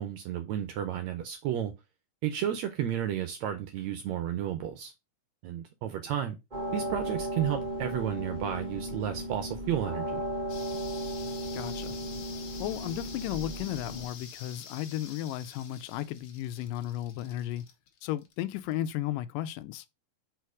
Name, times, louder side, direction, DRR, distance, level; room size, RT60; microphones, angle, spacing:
voice 1, 0.0-1.7 2.2-4.9 5.4-6.4 6.7-10.2, right 10 dB, 80° right, 1.7 m, -32 dB
sound 1, 6.5-14.1, right 1 dB, 30° right, 0.8 m, -35 dB
sound 2, 10.5-18.8, left 7 dB, 65° left, 2.0 m, -48 dB
voice 2, 11.5-12.0 12.6-17.6 18.0-19.9, left 13 dB, 90° left, 2.3 m, -34 dB
4.9 x 4.5 x 4.6 m
omnidirectional pair, 3.8 m